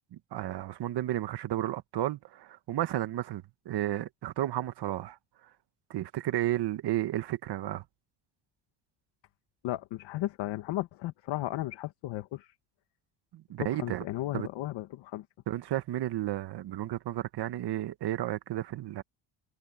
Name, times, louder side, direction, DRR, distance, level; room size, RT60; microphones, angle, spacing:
voice 1, 0.0-5.2 5.9-7.8 13.3-14.0 14.3-14.5 15.5-19.0, right 13 dB, 60° right, 1.5 m, -32 dB
voice 2, 9.6-12.5 13.6-15.3, left 16 dB, 75° left, 1.7 m, -35 dB
cardioid pair, 105°, 45 cm